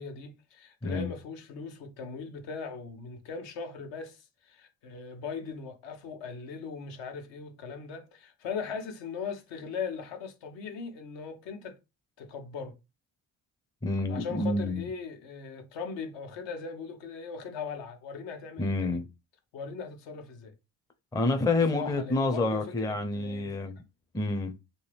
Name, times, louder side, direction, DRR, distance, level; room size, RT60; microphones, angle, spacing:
voice 1, 0.0-11.8 12.2-12.8 14.1-19.0 19.5-20.5 21.7-23.5, left 5 dB, 70° left, 0.9 m, -39 dB
voice 2, 13.8-14.8 18.6-19.1 21.1-23.8 24.1-24.6, left 2 dB, 10° left, 0.5 m, -28 dB
2.7 x 2.6 x 3.3 m
hypercardioid pair, 55°, 45 cm